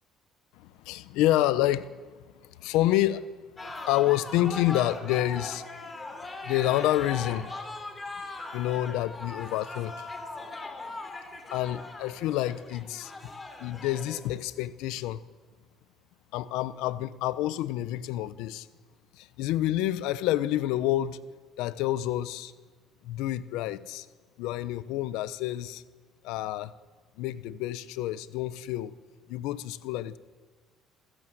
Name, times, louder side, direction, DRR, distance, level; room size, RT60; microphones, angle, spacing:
voice 1, 0.6-1.9 2.6-3.3 3.9-5.6 6.4-7.5 8.5-10.1 11.5-13.3 13.6-15.2 16.3-18.7 19.2-21.2 21.6-22.5 23.0-24.1 24.4-25.8 26.2-26.7 27.2-28.9 29.3-30.2, left 14 dB, 90° left, 15 dB, 0.8 m, -28 dB
sound 1, 3.6-14.2, left 2 dB, 20° left, 3.1 m, -40 dB
28.0 x 16.0 x 7.8 m, 1.4 s
cardioid pair, 135°, 0 cm